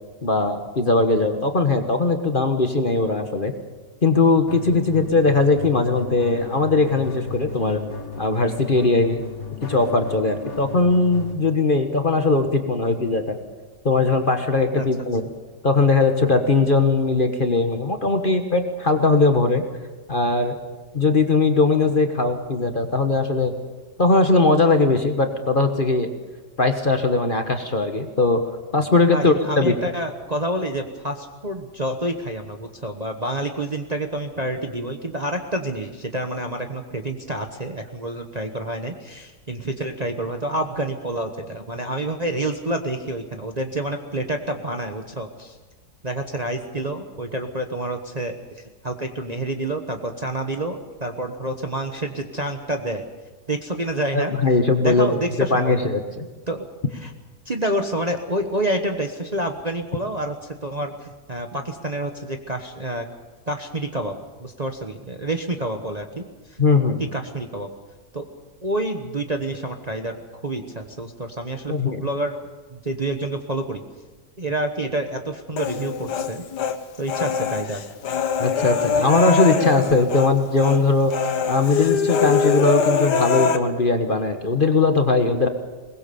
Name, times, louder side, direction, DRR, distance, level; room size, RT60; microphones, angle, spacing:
voice 1, 0.2-3.5 4.0-7.8 8.2-9.2 9.6-13.4 13.8-15.2 15.6-19.6 20.1-20.6 20.9-23.5 24.0-26.1 26.6-28.4 28.7-29.7 54.1-55.2 55.5-56.3 66.6-67.0 71.7-72.0 78.4-85.5, left 3 dB, 35° left, 6 dB, 1.4 m, -20 dB
sound 1, 4.5-11.3, left 4 dB, 55° left, 2.9 m, -35 dB
voice 2, 29.1-45.6 46.0-53.0 53.5-54.3 54.8-55.7 56.5-56.7 56.9-57.1 57.5-63.1 63.5-64.1 64.4-66.6 67.1-67.7 68.1-68.2 68.6-70.2 70.4-72.4 72.7-73.8 74.4-76.4 77.0-77.8, right 1 dB, 25° right, 4 dB, 1.2 m, -28 dB
Human voice, 75.6-76.8 77.1-80.3 80.6-80.8 81.1-83.6, left 6 dB, 75° left, 1.7 m, -23 dB
22.0 x 20.0 x 7.0 m, 1.3 s
omnidirectional pair, 1.8 m